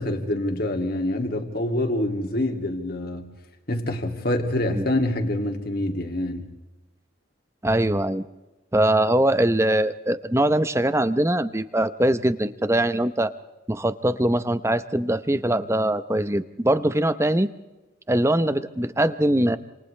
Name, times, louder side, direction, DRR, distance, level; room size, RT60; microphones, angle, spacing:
voice 1, 0.0-3.3 3.7-6.5, left 1 dB, 50° left, 3 dB, 2.6 m, -26 dB
voice 2, 7.6-8.2 8.7-13.3 13.7-17.5 18.1-19.6, right 1 dB, 15° right, 12 dB, 0.7 m, -22 dB
28.5 x 27.5 x 3.3 m, 1.1 s
head